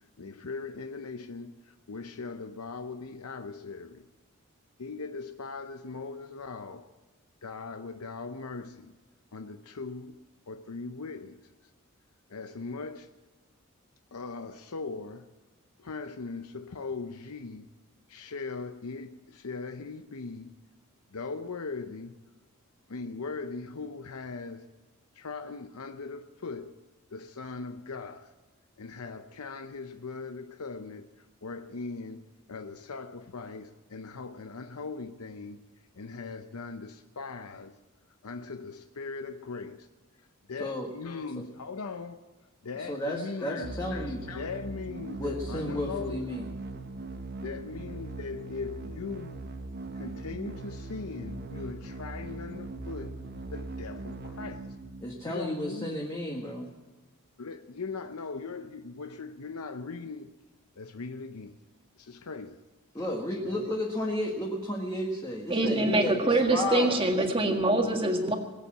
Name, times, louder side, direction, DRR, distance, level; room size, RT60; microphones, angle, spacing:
voice 1, 0.2-4.1 4.8-6.9 7.4-8.9 9.3-10.2 10.5-11.4 12.3-13.1 14.1-15.3 15.8-17.7 18.1-20.5 21.1-22.1 22.9-24.7 25.2-26.7 27.1-28.3 28.8-31.1 31.4-35.7 36.0-37.7 38.2-39.9 40.5-42.3 42.6-46.3 47.4-49.4 50.0-53.1 53.5-54.7 55.2-55.9 57.4-60.3 60.8-61.6 62.0-62.6 63.0-63.1 63.4-63.7 65.8-66.4, left 4 dB, 90° left, 0.8 m, -39 dB
voice 2, 42.7-44.2 45.2-46.5 55.0-56.7 62.9-67.0, left 1 dB, 15° left, 1.7 m, -33 dB
sound 1, 43.6-55.6, right 2 dB, 45° right, 1.0 m, -40 dB
voice 3, 65.5-68.4, right 2 dB, 25° right, 1.8 m, -24 dB
21.0 x 8.4 x 7.5 m
head